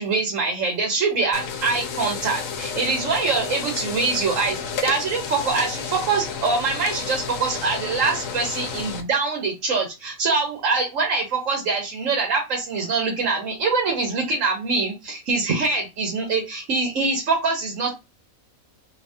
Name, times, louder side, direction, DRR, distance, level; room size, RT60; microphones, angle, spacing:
voice 1, 0.0-17.9, right 4 dB, 70° right, 1 dB, 1.2 m, -24 dB
sound 1, 1.3-9.0, left 6 dB, 75° left, 1.0 m, -31 dB
2.7 x 2.7 x 3.4 m, 0.25 s
omnidirectional pair, 1.4 m